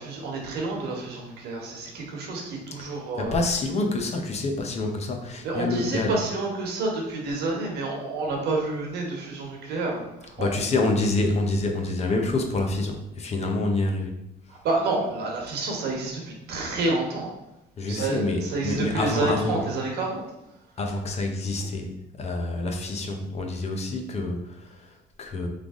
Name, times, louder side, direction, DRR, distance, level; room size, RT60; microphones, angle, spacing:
voice 1, 0.0-3.4 5.4-10.6 14.5-17.3 17.9-20.2, right 3 dB, 75° right, 0 dB, 1.2 m, -29 dB
voice 2, 3.2-6.1 10.4-14.2 14.5-14.6 17.8-19.7 20.8-25.5, left 2 dB, 40° left, 3 dB, 0.8 m, -27 dB
3.9 x 3.3 x 3.6 m, 0.92 s
cardioid pair, 110°, 17 cm